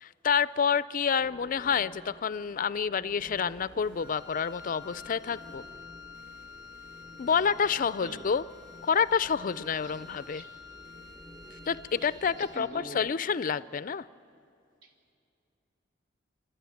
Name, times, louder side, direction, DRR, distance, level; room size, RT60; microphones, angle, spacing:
voice 1, 0.0-5.6 7.2-8.4 8.8-10.4 11.7-14.0, left 6 dB, 45° left, 17 dB, 0.4 m, -28 dB
sound 1, 1.2-13.1, right 1 dB, ahead, 0.7 m, -54 dB
sound 2, 3.2-12.6, right 1 dB, 50° right, 1.5 m, -58 dB
Wind instrument woodwind instrument, 4.0-12.8, left 5 dB, 20° right, 1.2 m, -49 dB
voice 2, 8.0-8.3 9.8-10.1 10.3-10.5 11.9-13.0 14.8-14.9, right 1 dB, 80° right, 2 dB, 2.4 m, -45 dB
27.5 x 12.5 x 9.1 m, 2.5 s
head